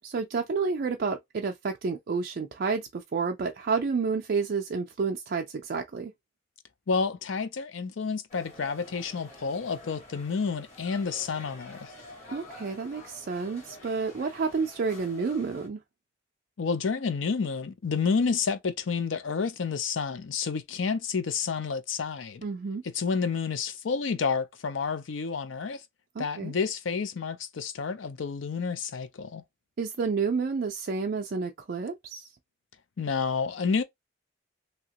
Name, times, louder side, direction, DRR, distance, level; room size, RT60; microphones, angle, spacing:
voice 1, 0.0-6.1 12.3-15.8 22.4-22.8 26.2-26.5 29.8-32.3, right 5 dB, 50° right, 0.4 m, -30 dB
voice 2, 6.9-11.9 16.6-22.4 22.8-25.8 26.2-29.4 33.0-33.8, left 5 dB, 75° left, 0.5 m, -30 dB
sound 1, 8.3-15.7, left 1 dB, 40° left, 1.6 m, -48 dB
2.8 x 2.8 x 2.8 m
head